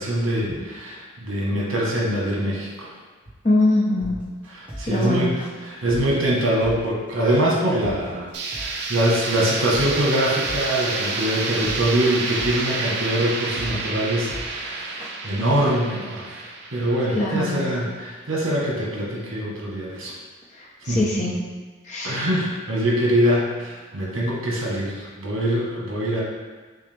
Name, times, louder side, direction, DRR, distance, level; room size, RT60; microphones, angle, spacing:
voice 1, 0.0-2.9 4.5-5.3 5.6-20.1 20.9-21.3 22.0-26.2, right 1 dB, 75° right, -3 dB, 1.2 m, -24 dB
voice 2, 3.4-4.2 4.9-5.4 17.1-17.7 20.5-21.3 21.8-22.2, left 1 dB, 35° left, -5 dB, 0.9 m, -22 dB
sound 1, 4.0-15.1, equal, 5° right, 0.7 m, -36 dB
sound 2, 8.3-18.1, right 3 dB, 55° right, 0.5 m, -30 dB
6.1 x 2.4 x 3.4 m, 1.4 s
head